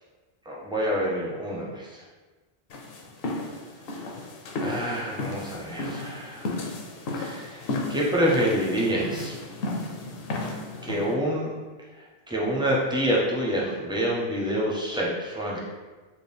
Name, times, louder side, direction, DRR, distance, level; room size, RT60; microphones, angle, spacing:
voice 1, 0.5-2.0 4.6-6.5 7.2-9.4 10.8-11.5 12.3-15.7, equal, 5° right, -5 dB, 0.5 m, -27 dB
sound 1, 2.7-11.1, left 2 dB, 70° left, 0.7 m, -34 dB
3.9 x 2.1 x 3.4 m, 1.3 s
omnidirectional pair, 1.0 m